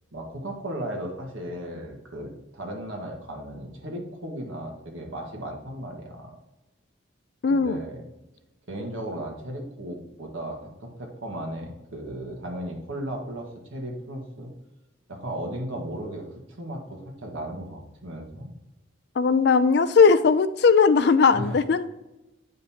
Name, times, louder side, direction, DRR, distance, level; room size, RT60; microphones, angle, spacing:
voice 1, 0.1-6.4 7.5-8.0 8.7-14.5 15.1-18.5 21.3-21.6, right 1 dB, 80° right, 0 dB, 1.5 m, -36 dB
voice 2, 7.4-7.8 19.2-21.9, left 5 dB, 55° left, 13 dB, 0.4 m, -18 dB
9.1 x 5.3 x 2.9 m, 0.99 s
head